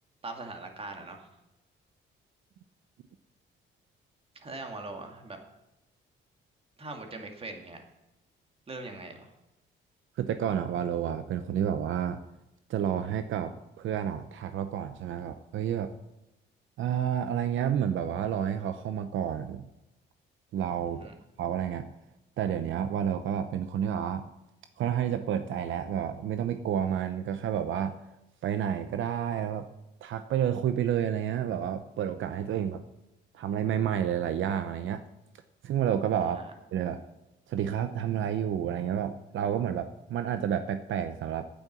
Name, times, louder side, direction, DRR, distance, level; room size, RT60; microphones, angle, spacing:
voice 1, 0.2-1.3 4.3-5.4 6.8-7.8 8.7-9.3 20.9-21.1 36.2-36.5, right 3 dB, 30° right, 4 dB, 2.1 m, -41 dB
voice 2, 10.2-12.2 12.7-15.9 16.8-19.6 20.5-21.1 21.4-21.9 22.4-24.2 24.8-27.9 28.4-29.7 30.0-32.8 33.3-35.0 35.6-36.4 36.7-37.0 37.5-41.5, right 9 dB, 70° right, 9 dB, 0.7 m, -30 dB
9.3 x 8.7 x 7.4 m, 0.96 s
cardioid pair, 130°, 21 cm